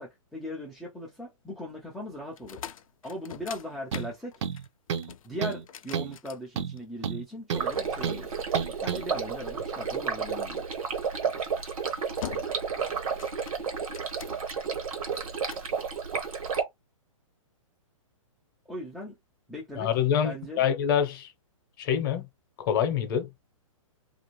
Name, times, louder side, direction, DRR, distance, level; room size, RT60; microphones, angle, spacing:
voice 1, 0.0-2.6 3.0-4.4 5.2-8.4 8.8-10.6 18.7-19.1 19.5-19.9 20.2-20.6, left 1 dB, ahead, 0.3 m, -39 dB
sound 1, 2.3-7.0 7.8-9.1 10.8-11.1 11.6-11.9 12.2-12.8 13.0-14.6 15.2-15.7, left 10 dB, 75° left, 0.4 m, -44 dB
sound 2, 3.9-4.1 4.4-5.1 5.4-5.6 5.9-6.2 6.6-7.7 8.0-8.2 8.5-9.0, right 7 dB, 55° right, 0.6 m, -31 dB
Stream, 7.5-16.6, right 6 dB, 80° right, 1.2 m, -32 dB
voice 2, 19.8-21.3 21.8-22.3 22.6-23.3, left 8 dB, 40° left, 0.7 m, -26 dB
2.5 x 2.4 x 3.0 m
hypercardioid pair, 155°, 18 cm